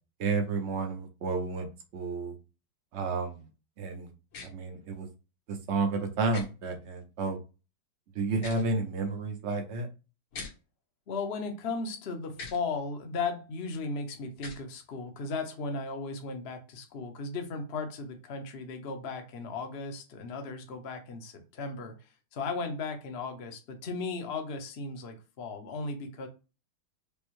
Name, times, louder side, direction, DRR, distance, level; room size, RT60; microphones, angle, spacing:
voice 1, 0.2-1.7 1.9-2.3 2.9-3.4 3.8-4.1 4.4-5.1 5.7-7.4 8.2-9.9, right 3 dB, 75° right, 4 dB, 0.6 m, -31 dB
sound 1, 4.3-4.5 6.3-6.5 8.3-8.7 10.3-10.5 12.3-12.6 14.3-14.6, left 4 dB, 85° left, 2.0 m, -41 dB
voice 2, 11.1-26.3, left 4 dB, 65° left, 4 dB, 0.6 m, -36 dB
5.1 x 2.1 x 3.0 m, 0.30 s
omnidirectional pair, 2.2 m